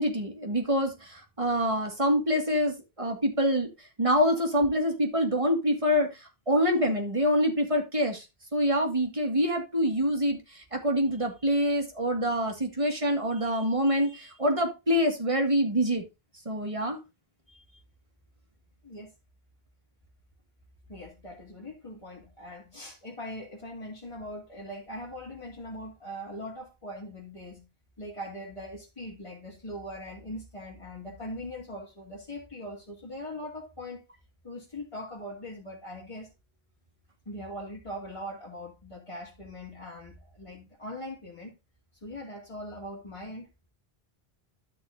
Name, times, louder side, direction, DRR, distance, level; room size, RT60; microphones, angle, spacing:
voice 1, 0.0-3.7 4.0-8.3 8.5-16.1 16.5-17.0, equal, 30° right, 2.3 m, -26 dB
voice 2, 20.9-27.7 28.0-34.0 34.4-36.3 37.2-41.5 42.0-43.5, left 1 dB, 30° left, 2.9 m, -41 dB
13.0 x 6.3 x 2.8 m
omnidirectional pair, 1.0 m